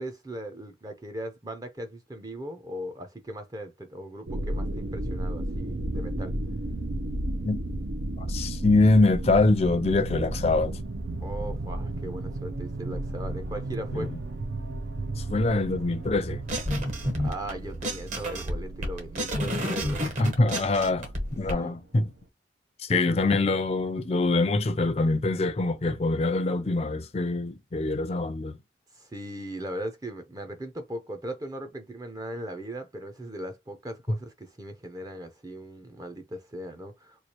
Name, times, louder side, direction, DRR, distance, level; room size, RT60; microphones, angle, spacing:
voice 1, 0.0-6.3 11.2-14.1 16.9-20.2 21.6-21.8 22.9-23.0 28.9-37.2, right 1 dB, 20° right, 0.5 m, -38 dB
sound 1, 4.3-21.6 22.0-22.1, right 1 dB, 90° right, 0.6 m, -34 dB
voice 2, 8.2-10.8 13.9-14.2 15.2-16.4 20.2-22.1 22.8-28.6, left 2 dB, 35° left, 0.4 m, -24 dB
sound 2, 12.0-21.1, right 4 dB, 80° left, 0.6 m, -46 dB
sound 3, 16.5-17.5 17.8-21.5, equal, 40° right, 0.9 m, -29 dB
3.1 x 2.3 x 4.2 m
head